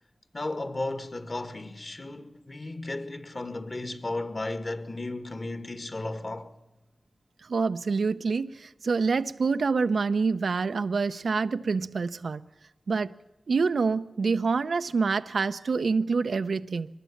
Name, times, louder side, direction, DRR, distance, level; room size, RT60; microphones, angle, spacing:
voice 1, 0.3-6.5, left 2 dB, 45° left, 1.8 m, -34 dB
voice 2, 7.5-12.4 12.9-13.1 13.5-16.9, right 4 dB, 90° right, 0.7 m, -26 dB
24.0 x 20.5 x 7.2 m
wide cardioid pair, 85°, 0 cm